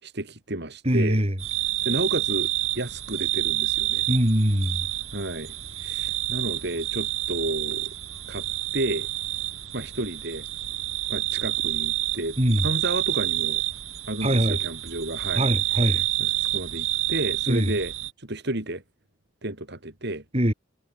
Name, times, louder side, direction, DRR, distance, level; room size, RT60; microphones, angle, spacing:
voice 1, 0.0-1.2 1.9-4.1 5.1-5.5 5.8-7.9 8.3-8.5 8.7-9.1 9.7-10.5 11.1-12.4 12.6-13.6 14.1-15.5 15.7-17.9 18.2-18.8 19.4-20.2, right 1 dB, 55° right, 3.6 m, -31 dB
voice 2, 0.8-1.3 4.1-4.8 12.4-12.6 14.2-14.6 15.4-16.0 17.5-17.7 20.3-20.5, equal, 30° right, 4.7 m, -22 dB
sound 1, 1.4-18.1, right 15 dB, 75° right, 7.2 m, -28 dB
head